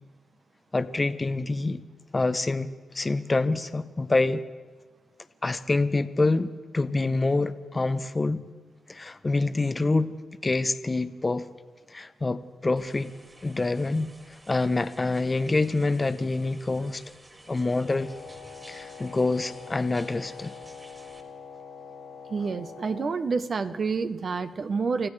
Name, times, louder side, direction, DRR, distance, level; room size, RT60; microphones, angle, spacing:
voice 1, 0.7-1.8 2.1-2.7 2.9-4.4 5.4-8.4 8.9-10.1 10.4-11.5 11.9-13.1 13.4-17.0 17.5-18.1 18.7-20.5, left 3 dB, 30° left, 11 dB, 0.7 m, -26 dB
sound 1, 12.8-21.2, right 1 dB, 25° right, 3.1 m, -52 dB
Wind instrument woodwind instrument, 17.8-23.2, left 6 dB, 75° left, 2.6 m, -44 dB
voice 2, 22.3-25.1, right 4 dB, 50° right, 11 dB, 0.9 m, -28 dB
29.0 x 15.5 x 3.3 m, 1.4 s
cardioid pair, 65°, 0 cm